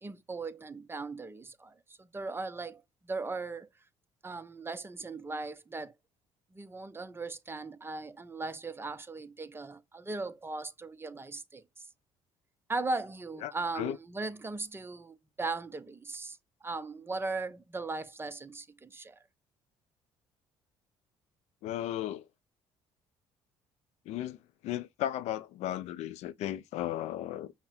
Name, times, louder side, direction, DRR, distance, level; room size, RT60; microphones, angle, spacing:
voice 1, 0.0-3.7 4.2-5.9 6.5-11.6 12.7-16.4 16.6-19.2, right 3 dB, 20° right, 0.7 m, -38 dB
voice 2, 13.4-14.0 21.6-22.3 24.1-27.5, left 12 dB, 75° left, 0.4 m, -35 dB
5.7 x 2.1 x 4.2 m
supercardioid pair, 80°, 12 cm